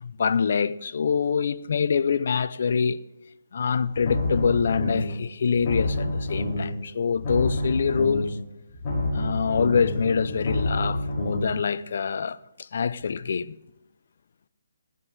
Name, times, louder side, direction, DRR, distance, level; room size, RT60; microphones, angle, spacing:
voice 1, 0.0-3.0 3.5-8.4 9.1-12.4 12.7-13.5, left 6 dB, 60° left, 0.5 m, -25 dB
sound 1, 3.9-5.2 5.5-6.8 7.1-8.4 8.7-11.5, left 1 dB, 35° left, 5.6 m, -28 dB
16.5 x 12.5 x 3.2 m
hypercardioid pair, 150°, 0 cm